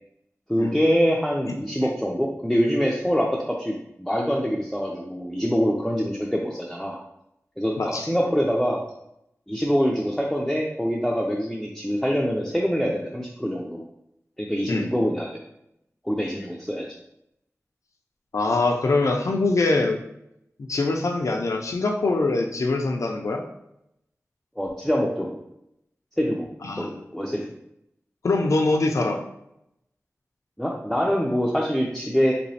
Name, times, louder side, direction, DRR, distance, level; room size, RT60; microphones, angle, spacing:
voice 1, 0.5-7.0 7.6-8.8 9.5-13.8 14.4-15.4 16.0-16.9 24.6-25.4 26.2-26.5 26.8-27.5 30.6-32.3, equal, ahead, -3 dB, 0.4 m, -24 dB
voice 2, 18.3-20.0 20.6-23.4 26.6-27.1 28.2-29.2, left 3 dB, 75° left, 2 dB, 0.4 m, -23 dB
3.4 x 2.9 x 2.7 m, 0.80 s
wide cardioid pair, 65°, 5 cm